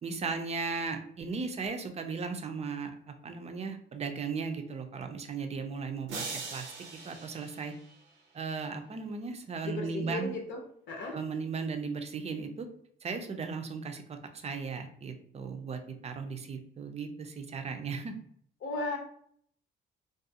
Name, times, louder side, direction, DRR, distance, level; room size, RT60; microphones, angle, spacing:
voice 1, 0.0-6.3 6.5-7.7 8.3-10.3 11.1-12.7 13.0-18.2, right 5 dB, 35° right, 6 dB, 0.5 m, -36 dB
sound 1, 6.1-8.4, right 4 dB, 80° right, 0.6 m, -41 dB
voice 2, 9.6-10.6 10.9-11.2 18.6-19.0, left 2 dB, 70° left, 1 dB, 0.7 m, -35 dB
2.4 x 2.3 x 2.7 m, 0.63 s
cardioid pair, 90°, 20 cm